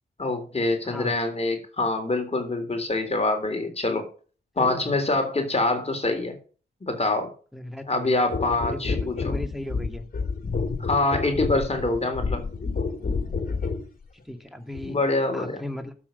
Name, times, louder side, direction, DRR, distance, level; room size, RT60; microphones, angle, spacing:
voice 1, 0.2-4.1 4.6-6.4 6.8-7.3 7.9-9.4 10.8-12.4 14.9-15.6, left 2 dB, 35° left, 4 dB, 3.6 m, -25 dB
voice 2, 4.6-4.9 7.5-8.2 8.6-10.0 13.3-13.4 14.3-15.0 15.3-15.9, left 1 dB, ahead, 7 dB, 2.3 m, -36 dB
sound 1, 8.3-13.9 14.7-14.9, left 4 dB, 55° left, 2.7 m, -29 dB
12.5 x 7.6 x 5.4 m, 0.38 s
cardioid pair, 80°, 18 cm